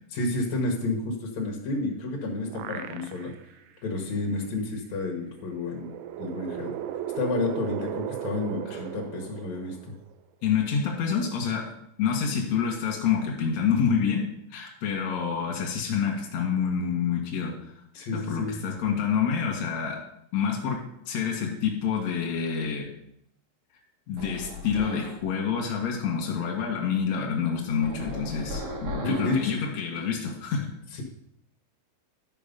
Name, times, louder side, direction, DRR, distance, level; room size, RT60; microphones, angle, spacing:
voice 1, 0.1-3.3 3.8-5.9 6.2-6.7 7.1-9.8 17.9-18.6 29.0-29.6 30.9-31.0, left 2 dB, 85° left, -1 dB, 1.5 m, -30 dB
sound 1, 1.9-3.5 4.0-4.1 5.3-10.1, right 11 dB, 80° right, 3.1 m, -36 dB
voice 2, 10.4-11.7 12.0-17.5 18.1-20.0 20.3-20.8 21.0-22.9 23.7-23.8 24.1-30.7, left 7 dB, 65° left, 0 dB, 1.7 m, -27 dB
sound 2, 24.2-25.2 27.8-29.6, equal, 60° right, 1.8 m, -36 dB
12.0 x 5.3 x 5.3 m, 0.73 s
omnidirectional pair, 5.8 m